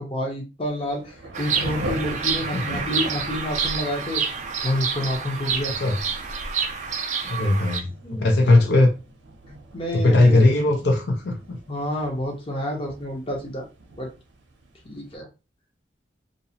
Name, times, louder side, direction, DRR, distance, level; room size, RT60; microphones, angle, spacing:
voice 1, 0.0-4.2 4.6-5.7 7.7-7.8 8.0-8.3 9.5-10.6 11.7-13.7 14.0-14.1 14.8-15.3, left 1 dB, 30° left, 0.6 m, -29 dB
Thunder / Rain, 0.7-15.1, right 2 dB, 90° right, 0.6 m, -41 dB
Bird vocalization bird call bird song, 1.3-7.8, right 6 dB, 40° right, 0.3 m, -28 dB
voice 2, 7.2-8.9 9.9-11.6, left 2 dB, 70° left, 0.6 m, -19 dB
2.6 x 2.0 x 2.7 m
head